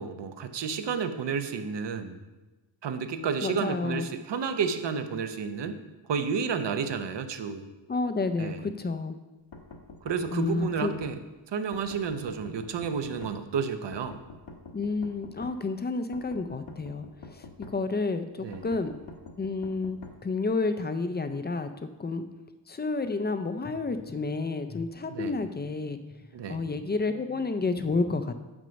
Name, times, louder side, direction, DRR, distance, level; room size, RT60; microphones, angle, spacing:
voice 1, 0.0-2.2 2.8-5.8 6.1-7.6 8.4-8.6 10.0-11.2 11.5-14.2 18.4-18.6 25.2-25.3 26.3-26.6, right 6 dB, 70° right, 9 dB, 0.8 m, -31 dB
voice 2, 3.4-4.1 7.9-9.2 10.3-11.0 14.7-18.9 19.4-21.7 22.0-22.2 22.7-26.1 26.5-28.3, left 3 dB, 25° left, 9 dB, 0.4 m, -30 dB
sound 1, 9.5-11.1 11.7-13.3 13.9-15.6 16.1-17.8 18.5-20.2, left 3 dB, 75° left, 1.2 m, -45 dB
6.2 x 5.2 x 6.9 m, 1.2 s
wide cardioid pair, 150°, 44 cm